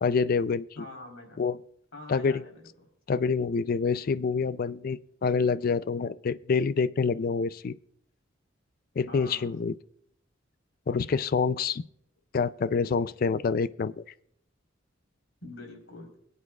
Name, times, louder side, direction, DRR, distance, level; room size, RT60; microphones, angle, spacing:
voice 1, 0.0-0.6 1.4-1.6 2.1-2.4 3.1-7.7 9.0-9.8 10.9-11.8 12.3-14.0, left 5 dB, 45° left, 17 dB, 0.4 m, -27 dB
voice 2, 0.8-1.4 1.9-2.6 9.1-9.5 15.4-16.1, left 2 dB, 70° left, 1 dB, 4.0 m, -44 dB
24.0 x 8.3 x 2.4 m, 0.68 s
head